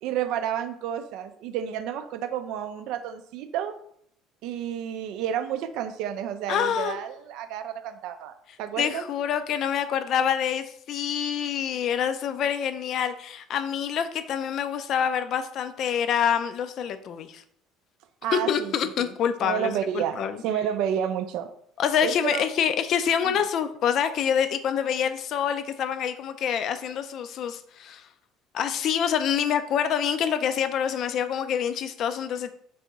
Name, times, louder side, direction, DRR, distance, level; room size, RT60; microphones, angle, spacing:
voice 1, 0.0-3.7 4.4-9.0 18.2-19.1 19.4-21.5 22.0-22.5 23.2-23.4, right 9 dB, 55° right, 9 dB, 0.4 m, -30 dB
voice 2, 6.5-7.0 8.8-17.4 18.3-20.4 21.8-28.1 28.5-32.5, left 8 dB, 50° left, 10 dB, 0.4 m, -26 dB
3.5 x 3.3 x 4.0 m, 0.68 s
figure-of-eight pair, 60°, 0 cm